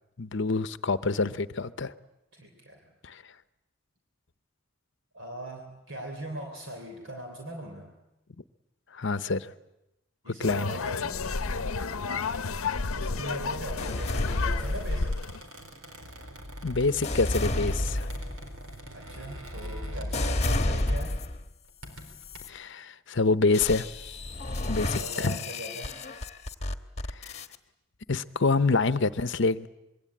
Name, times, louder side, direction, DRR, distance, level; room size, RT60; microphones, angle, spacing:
voice 1, 0.2-1.9 3.0-3.3 8.9-9.5 10.3-10.7 13.2-13.3 16.6-18.1 22.5-24.2 24.7-25.4 27.1-27.4 28.1-29.7, left 3 dB, 60° left, 14 dB, 0.8 m, -27 dB
voice 2, 2.3-2.9 5.1-7.9 10.2-12.2 12.9-15.2 18.9-21.2 24.8-25.9, right 1 dB, 60° right, 2 dB, 3.5 m, -40 dB
sound 1, 10.4-15.4, left 4 dB, 90° left, 0.8 m, -31 dB
sound 2, 13.8-15.3 16.0-21.5 22.1-22.5 23.5-27.6, left 1 dB, 30° left, 1.2 m, -32 dB
Squeak, 14.5-20.6 20.9-21.1 21.6-22.4, right 1 dB, 85° right, 4.2 m, -47 dB
26.0 x 22.0 x 8.7 m, 0.92 s
head